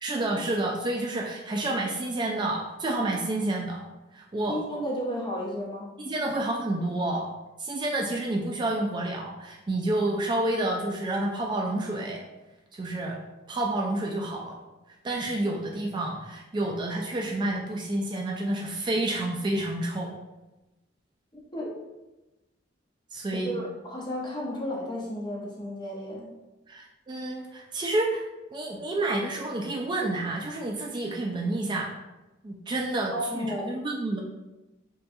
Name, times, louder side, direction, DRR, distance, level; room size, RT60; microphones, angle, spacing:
voice 1, 0.0-3.8 4.1-4.6 6.0-7.3 7.6-12.2 12.7-13.2 13.5-14.6 15.0-20.2 23.1-23.7 26.7-28.2 28.5-31.9 32.4-34.2, right 2 dB, 25° right, -1 dB, 0.3 m, -29 dB
voice 2, 4.5-5.9 21.5-21.7 23.3-26.3 33.1-33.7, equal, 25° left, -3 dB, 0.8 m, -33 dB
5.4 x 2.3 x 2.6 m, 1.0 s
head